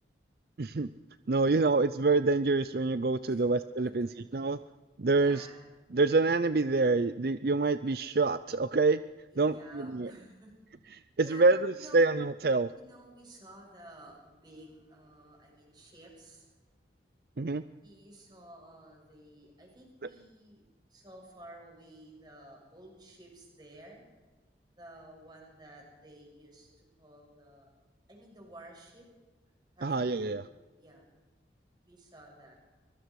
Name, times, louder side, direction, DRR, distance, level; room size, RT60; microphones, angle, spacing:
voice 1, 0.6-0.9 1.3-4.6 5.0-5.5 5.9-9.0 9.4-10.1 10.9-12.7 17.4-17.6 29.8-30.4, right 3 dB, 55° right, 13 dB, 0.5 m, -26 dB
voice 2, 5.1-5.6 9.3-10.5 11.1-11.5 11.7-12.1 12.7-16.5 17.8-20.6 20.9-24.0 24.7-27.7 28.1-29.1 29.7-30.4 30.8-31.1 31.8-32.5, right 1 dB, 25° right, -1 dB, 7.1 m, -53 dB
24.0 x 22.5 x 4.8 m, 1.3 s
head